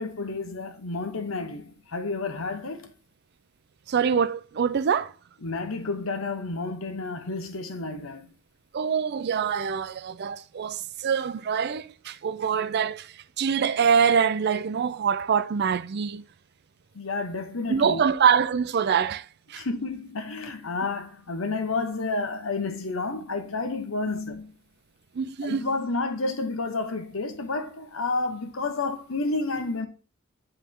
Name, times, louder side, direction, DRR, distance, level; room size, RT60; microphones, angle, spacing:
voice 1, 0.0-2.9 5.4-8.3 16.9-18.0 19.5-24.5 25.4-29.9, left 3 dB, 85° left, 1.0 m, -30 dB
voice 2, 3.9-5.1 8.7-16.2 17.7-19.6 25.1-25.6, right 7 dB, 55° right, 0.4 m, -25 dB
9.8 x 3.3 x 3.7 m
head